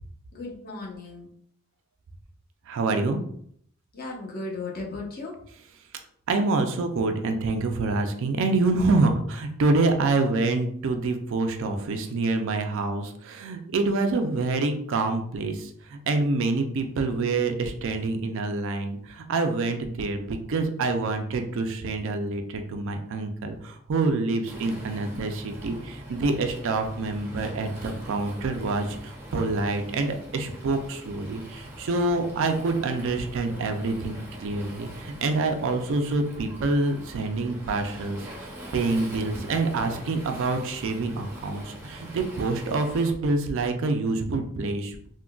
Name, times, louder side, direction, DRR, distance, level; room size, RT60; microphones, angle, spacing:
voice 1, 0.3-1.3 3.9-5.3, left 3 dB, 45° left, -1 dB, 0.7 m, -36 dB
voice 2, 2.7-3.2 6.3-34.1 34.4-45.0, right 3 dB, 60° right, 6 dB, 0.4 m, -26 dB
Waves surf, 24.5-43.1, right 1 dB, 10° right, 0.5 m, -42 dB
3.6 x 2.2 x 2.2 m, 0.64 s
head